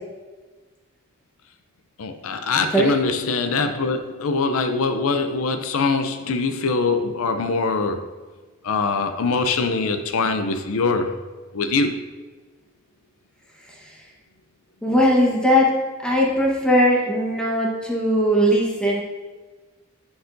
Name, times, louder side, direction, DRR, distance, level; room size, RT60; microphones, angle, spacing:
voice 1, 2.0-8.1 8.6-11.2 11.5-12.1, left 4 dB, 80° left, 7 dB, 0.5 m, -23 dB
voice 2, 14.8-15.7 16.0-19.0, equal, 5° left, -3 dB, 1.1 m, -19 dB
9.9 x 4.7 x 2.6 m, 1.3 s
head